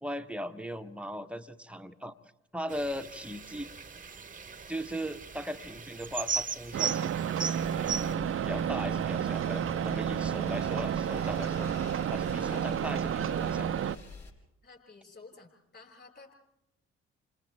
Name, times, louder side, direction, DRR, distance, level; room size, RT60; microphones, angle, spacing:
voice 1, 0.0-2.1 2.5-3.7 4.7-7.1 7.8-11.7 12.1-13.7, equal, 5° right, 8 dB, 1.2 m, -38 dB
sound 1, 2.7-8.1, right 6 dB, 25° right, 1.1 m, -37 dB
sound 2, 6.7-14.0, right 9 dB, 40° right, 0.7 m, -31 dB
sound 3, 7.6-14.3, left 4 dB, 55° left, 6.3 m, -46 dB
voice 2, 10.5-11.0 14.6-16.3, left 3 dB, 30° left, 1 dB, 6.4 m, -53 dB
30.0 x 27.0 x 3.5 m, 0.88 s
figure-of-eight pair, 45°, 33 cm